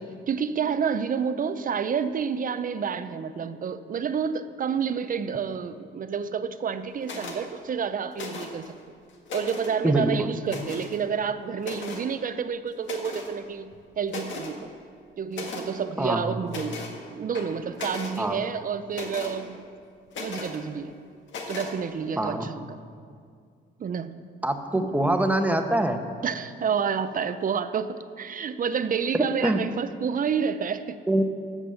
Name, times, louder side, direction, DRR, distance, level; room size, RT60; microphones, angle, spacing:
voice 1, 0.3-8.7 9.3-14.6 15.2-16.8 17.1-19.6 20.2-20.9 21.5-22.7 23.8-24.1 24.7-25.0 26.2-31.0, right 6 dB, 45° right, 12 dB, 0.6 m, -29 dB
sound 1, 7.0-7.4 8.1-8.7 9.1-9.8 10.5-11.0 11.6-12.1 12.8-13.3 13.7-13.8 14.1-14.5 15.3-15.7 16.5-17.0 17.3-18.2 18.9-19.4 20.1-20.6 21.3-21.7, left 3 dB, 70° left, 1.8 m, -37 dB
voice 2, 9.8-10.3 16.0-16.3 18.2-18.4 22.2-22.4 24.4-26.0 29.1-29.6 31.1-31.2, right 1 dB, 5° right, 6 dB, 1.1 m, -24 dB
15.5 x 6.1 x 6.9 m, 2.2 s
cardioid pair, 90°, 20 cm